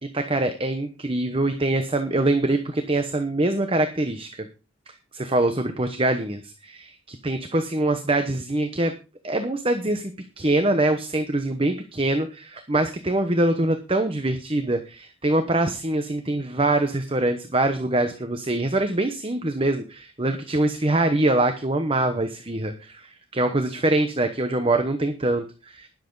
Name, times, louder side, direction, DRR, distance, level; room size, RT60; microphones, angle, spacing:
voice 1, 0.1-4.5 5.1-8.9 9.2-10.1 10.4-25.9, right 2 dB, 25° right, 7 dB, 1.0 m, -24 dB
19.5 x 7.5 x 4.0 m, 0.33 s
head